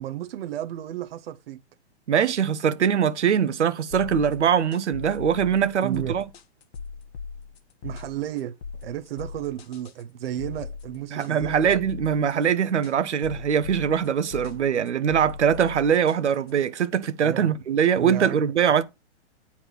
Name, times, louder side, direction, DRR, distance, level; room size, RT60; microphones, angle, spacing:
voice 1, 0.0-1.6 5.8-6.2 7.8-8.5 8.8-11.8 17.2-17.5 17.9-18.5, right 12 dB, 55° right, 0.9 m, -33 dB
voice 2, 2.1-6.2 11.1-18.8, right 8 dB, 80° right, 1.0 m, -22 dB
sound 1, 3.9-16.8, left 5 dB, 60° left, 1.6 m, -39 dB
8.2 x 4.3 x 5.9 m
hypercardioid pair, 135°, 35 cm